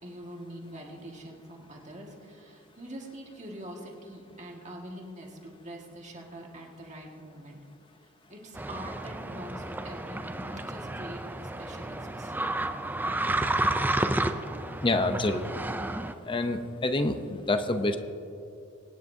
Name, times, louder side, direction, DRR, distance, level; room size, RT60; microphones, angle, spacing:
voice 1, 0.0-7.6 8.3-12.3 12.8-13.3, right 1 dB, 35° right, -1 dB, 1.8 m, -44 dB
sound 1, 8.5-16.1, right 1 dB, 10° right, 0.4 m, -31 dB
voice 2, 14.8-15.4 16.3-18.0, left 2 dB, 25° left, 8 dB, 0.7 m, -27 dB
24.5 x 9.5 x 2.7 m, 2.6 s
head